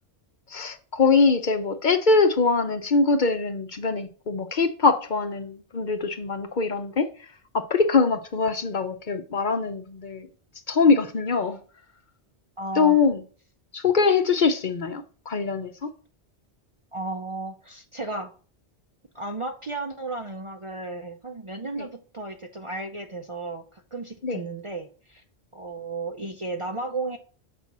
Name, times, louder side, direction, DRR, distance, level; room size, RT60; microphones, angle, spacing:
voice 1, 0.5-7.1 7.5-10.3 10.7-11.6 12.8-13.2 13.7-15.9 21.8-21.9 24.2-24.4, left 4 dB, 50° left, 0.8 m, -23 dB
voice 2, 12.6-13.0 16.9-18.3 19.1-25.2 25.5-27.2, right 2 dB, 40° right, 0.5 m, -34 dB
7.1 x 4.2 x 5.9 m
omnidirectional pair, 1.1 m